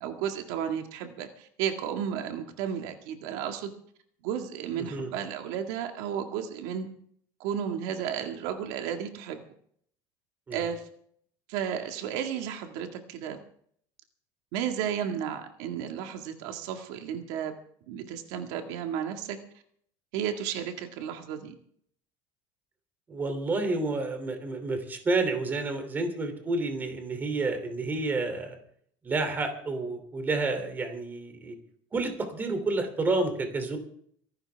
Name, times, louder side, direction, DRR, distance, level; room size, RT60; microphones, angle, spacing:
voice 1, 0.0-3.7 4.2-6.9 7.4-9.4 10.5-10.8 11.5-13.4 14.5-17.5 17.9-19.4 20.1-21.5, right 8 dB, 85° right, 4 dB, 2.0 m, -33 dB
voice 2, 4.8-5.1 10.5-10.7 23.1-28.6 29.0-31.5 31.9-33.8, right 3 dB, 20° right, 6 dB, 3.0 m, -30 dB
25.0 x 12.0 x 3.5 m, 0.62 s
cardioid pair, 155°, 9 cm